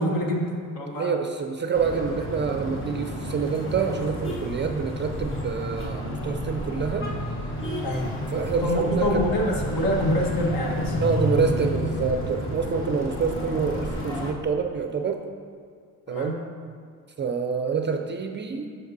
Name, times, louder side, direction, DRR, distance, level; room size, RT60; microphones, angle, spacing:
voice 1, 0.0-1.1 7.8-8.1 8.6-11.0 16.1-16.4, equal, 65° left, -1 dB, 1.4 m, -26 dB
voice 2, 1.0-7.1 8.3-9.2 11.0-15.2 16.1-16.3 17.2-18.7, right 5 dB, 30° right, 5 dB, 0.4 m, -27 dB
sound 1, 1.7-14.3, equal, 30° left, 1.1 m, -30 dB
7.6 x 6.0 x 2.7 m, 2.2 s
cardioid pair, 95°, 38 cm